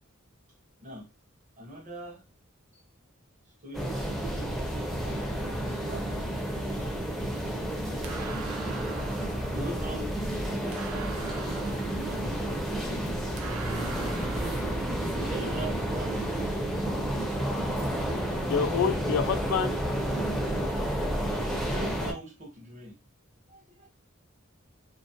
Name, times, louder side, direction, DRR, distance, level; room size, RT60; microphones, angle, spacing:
voice 1, 1.6-2.2 2.7-2.8 3.6-4.6 5.0-6.1 7.8-8.3 9.5-11.5 11.9-13.1 15.0-16.1 21.2-23.0 23.5-23.9, right 1 dB, 35° right, 0.7 m, -42 dB
sound 1, 3.7-22.1, right 1 dB, ahead, 0.4 m, -31 dB
sound 2, 6.8-14.7, right 5 dB, 85° right, 0.4 m, -44 dB
voice 2, 18.4-19.7, left 6 dB, 70° left, 0.3 m, -27 dB
2.3 x 2.0 x 2.6 m
head